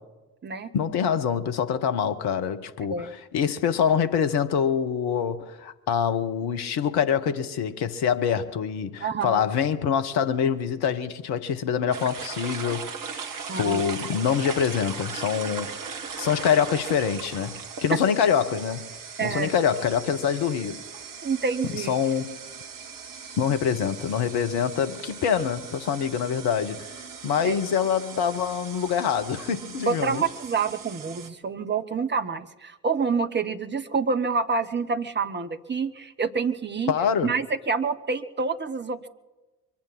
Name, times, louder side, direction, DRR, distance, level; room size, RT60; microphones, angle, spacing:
voice 1, 0.7-13.2 13.6-18.9 19.2-20.8 21.7-22.4 23.4-26.9 27.2-30.2 36.9-37.3, left 7 dB, 55° left, 1.3 m, -25 dB
voice 2, 9.0-9.5 13.5-13.8 17.9-18.0 19.2-19.5 21.2-22.0 27.4-27.5 29.9-36.9 37.2-39.1, right 5 dB, 20° right, 1.2 m, -27 dB
sound 1, 11.9-31.3, right 6 dB, 40° right, 1.7 m, -39 dB
24.0 x 8.9 x 6.2 m
figure-of-eight pair, 50°, 48 cm